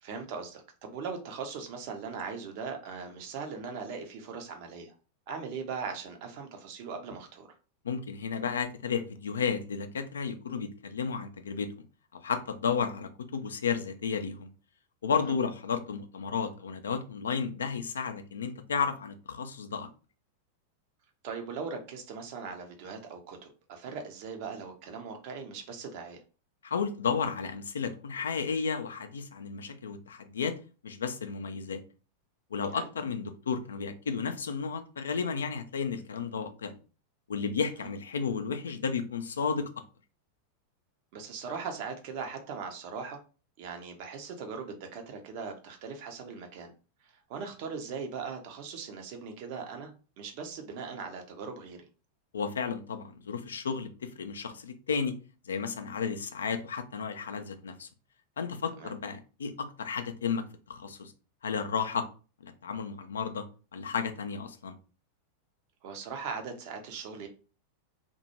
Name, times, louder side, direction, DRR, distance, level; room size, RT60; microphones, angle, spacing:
voice 1, 0.0-4.9 5.3-7.5 15.2-15.3 21.2-26.2 32.7-32.9 41.1-43.2 43.6-46.7 47.0-49.9 50.2-51.8 58.8-58.9 65.8-67.3, right 5 dB, 45° right, 0.6 m, -39 dB
voice 2, 7.8-11.7 12.1-14.5 15.0-19.9 26.6-30.5 30.8-31.8 32.5-36.8 37.3-39.7 52.3-55.1 55.5-57.9 58.4-61.1 61.4-62.1 62.4-63.4 63.7-64.8, left 6 dB, 70° left, 0.3 m, -33 dB
2.2 x 2.1 x 2.8 m
figure-of-eight pair, 90°, 0 cm